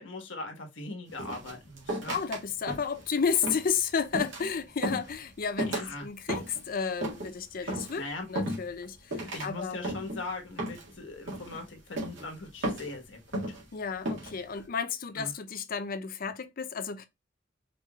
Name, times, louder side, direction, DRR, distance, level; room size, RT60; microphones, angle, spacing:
voice 1, 0.0-2.2 5.6-6.1 7.6-8.3 9.3-13.4 15.1-15.3, left 2 dB, 90° left, 1.3 m, -40 dB
sound 1, 1.2-2.4 2.7-3.0 3.4-3.8 4.1-4.5 4.8-5.1 5.6-5.9 6.3-6.6 7.0-7.3 7.7-8.0 8.4-8.8 9.1-9.5 9.8-10.2 10.6-10.9 11.3-11.6 12.0-12.3 12.6-13.0 13.3-13.6 14.1-14.3, right 1 dB, 90° right, 1.8 m, -34 dB
voice 2, 2.1-9.9 13.7-17.1, left 6 dB, 50° left, 0.5 m, -32 dB
4.9 x 3.0 x 2.3 m
head